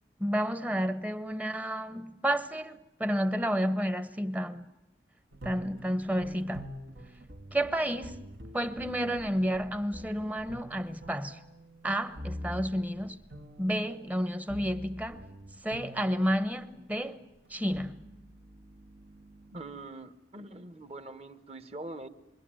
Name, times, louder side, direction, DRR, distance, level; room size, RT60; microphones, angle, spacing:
voice 1, 0.2-4.7 5.4-6.7 7.5-8.3 8.5-11.4 11.8-13.2 13.6-15.2 15.6-18.0, equal, 10° right, 1.0 m, -31 dB
sound 1, 5.3-16.8 17.5-19.9, equal, 65° right, 1.6 m, -46 dB
voice 2, 19.5-22.1, right 2 dB, 35° right, 1.3 m, -43 dB
26.5 x 24.0 x 8.9 m
head